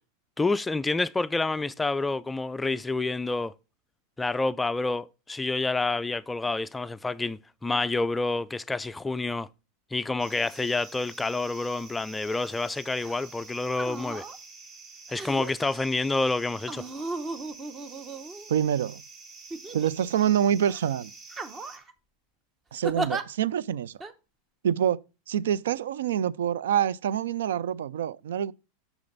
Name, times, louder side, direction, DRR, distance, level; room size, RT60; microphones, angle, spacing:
voice 1, 0.4-3.5 4.2-9.5 9.9-14.2 15.1-16.8, left 3 dB, 10° left, 0.3 m, -28 dB
sound 1, 10.2-21.8, right 4 dB, 40° right, 1.7 m, -48 dB
sound 2, 13.0-13.2 13.7-14.4 15.2-15.7 16.7-18.7 19.5-20.3 20.7-20.9 21.3-21.9 22.8-23.2 24.0-24.1, right 2 dB, 20° right, 0.8 m, -36 dB
voice 2, 18.5-19.0 19.7-21.1 22.7-23.9 24.6-25.0 25.3-28.5, right 9 dB, 85° right, 0.3 m, -26 dB
6.6 x 6.0 x 3.9 m
supercardioid pair, 120°, 0 cm